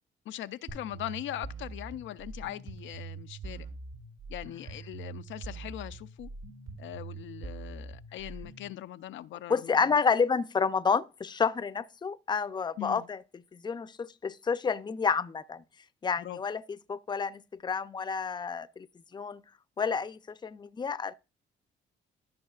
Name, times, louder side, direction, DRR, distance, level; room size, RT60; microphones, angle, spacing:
voice 1, 0.3-3.7 4.3-6.3 6.8-9.7 12.8-13.1 16.2-16.4, left 13 dB, 75° left, 0.5 m, -40 dB
sound 1, 0.7-8.7, right 4 dB, 80° right, 2.9 m, -43 dB
voice 2, 9.5-15.6 16.0-18.9 19.1-19.4 19.8-21.1, left 5 dB, 20° left, 0.5 m, -30 dB
13.0 x 5.6 x 2.4 m
cardioid pair, 90°, 20 cm